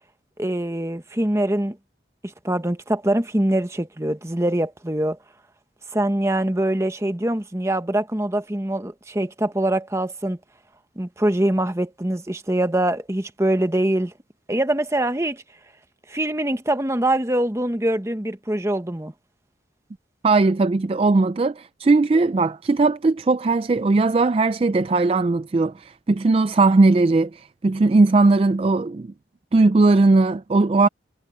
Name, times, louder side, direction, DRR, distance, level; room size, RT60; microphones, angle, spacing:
voice 1, 0.4-1.8 2.2-5.2 5.9-10.4 11.0-14.1 14.5-15.4 16.1-19.1, right 1 dB, 15° right, 1.0 m, -23 dB
voice 2, 20.2-29.1 29.5-30.9, right 3 dB, 30° right, 0.3 m, -18 dB
head